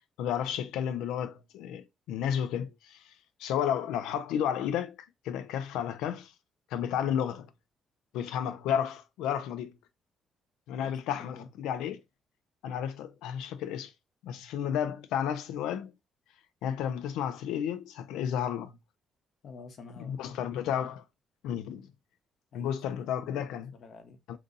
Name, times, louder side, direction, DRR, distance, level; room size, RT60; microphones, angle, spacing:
voice 1, 0.2-3.1 3.4-5.0 5.2-6.3 6.7-7.5 8.1-9.8 10.7-12.0 12.6-13.9 14.2-15.9 16.6-18.8 20.0-21.0 21.4-21.9 22.5-23.7, left 9 dB, 85° left, 0.3 m, -32 dB
voice 2, 10.8-11.5 19.4-20.4 22.5-24.2, left 4 dB, 60° left, 0.8 m, -49 dB
2.6 x 2.6 x 3.7 m
supercardioid pair, 70°, 0 cm